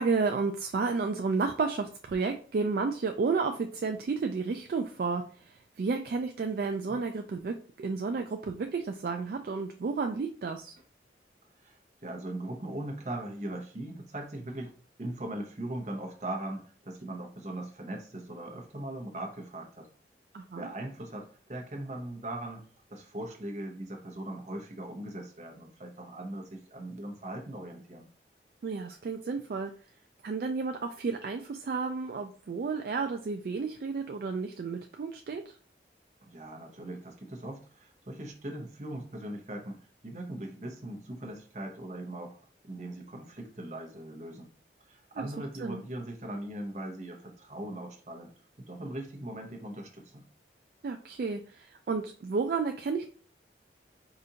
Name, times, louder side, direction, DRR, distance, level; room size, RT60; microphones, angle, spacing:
voice 1, 0.0-10.7 20.3-20.7 28.6-29.7 30.2-35.4 45.2-45.3 45.6-45.8 50.8-53.1, right 4 dB, 55° right, 4 dB, 0.3 m, -32 dB
voice 2, 11.6-14.7 15.0-19.9 20.5-22.6 22.9-28.1 36.2-42.4 42.6-44.5 44.9-50.2, right 1 dB, 40° right, 1 dB, 0.8 m, -40 dB
4.9 x 2.5 x 2.8 m, 0.43 s
head